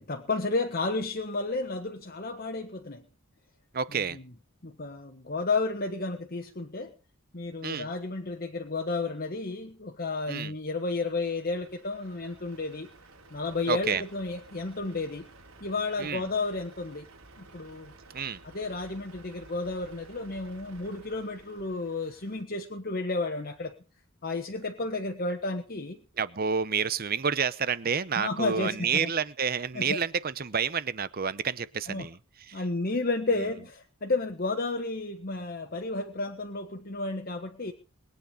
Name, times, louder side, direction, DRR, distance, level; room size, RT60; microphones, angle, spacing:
voice 1, 0.0-3.0 3.9-4.2 4.6-6.9 7.3-12.9 13.3-15.3 15.6-17.1 17.4-17.9 18.4-23.7 24.2-26.0 28.2-29.1 29.7-30.0 31.9-32.1 32.5-37.7, left 3 dB, 45° left, 4 dB, 1.3 m, -32 dB
voice 2, 3.7-4.2 7.6-7.9 10.3-10.5 13.7-14.0 16.0-16.2 18.1-18.4 26.2-32.2 32.5-32.6, right 6 dB, 45° right, 16 dB, 0.8 m, -29 dB
Truck, 11.2-22.4, right 2 dB, 80° right, 4.1 m, -53 dB
21.5 x 9.3 x 5.1 m, 0.34 s
head